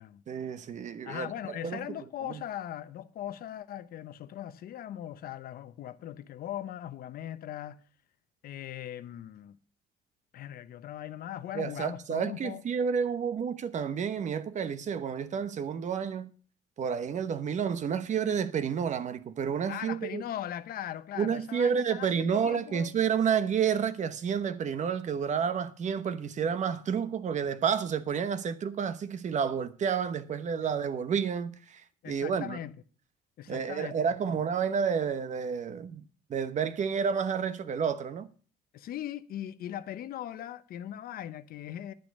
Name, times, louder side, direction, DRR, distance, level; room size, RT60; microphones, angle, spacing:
voice 1, 0.3-1.9 2.2-2.4 11.5-16.3 16.8-20.2 21.2-32.6 33.5-36.0 36.3-38.3, right 7 dB, 45° right, 1.0 m, -30 dB
voice 2, 1.1-7.8 8.4-9.6 10.3-12.6 19.7-22.9 32.0-32.7 33.4-33.9 34.3-34.4 38.7-41.9, left 11 dB, 60° left, 0.8 m, -39 dB
10.5 x 9.0 x 5.3 m
cardioid pair, 110°, 17 cm